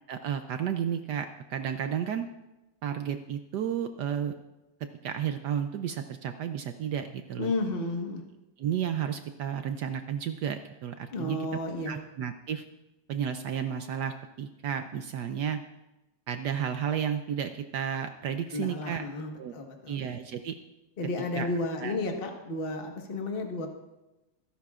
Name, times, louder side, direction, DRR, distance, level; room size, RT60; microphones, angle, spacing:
voice 1, 0.1-2.3 2.8-4.3 5.0-7.5 8.6-11.4 11.9-12.6 13.1-15.6 16.3-19.0 19.4-19.5 19.9-20.6 21.4-21.5 21.8-22.0, right 8 dB, 70° right, 8 dB, 1.0 m, -32 dB
voice 2, 7.4-8.2 11.1-12.0 18.5-20.0 21.0-23.7, left 2 dB, 30° left, 2 dB, 1.4 m, -32 dB
24.5 x 11.5 x 2.4 m, 0.98 s
omnidirectional pair, 2.3 m